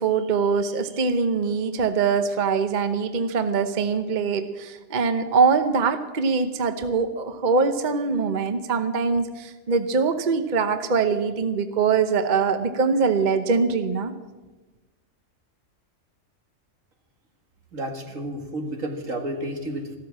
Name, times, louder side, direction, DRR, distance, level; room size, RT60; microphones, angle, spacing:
voice 1, 0.0-14.1, right 5 dB, 40° right, 9 dB, 1.0 m, -23 dB
voice 2, 17.7-20.0, right 1 dB, 80° right, 3 dB, 2.5 m, -31 dB
14.5 x 13.0 x 7.4 m, 1.2 s
omnidirectional pair, 1.4 m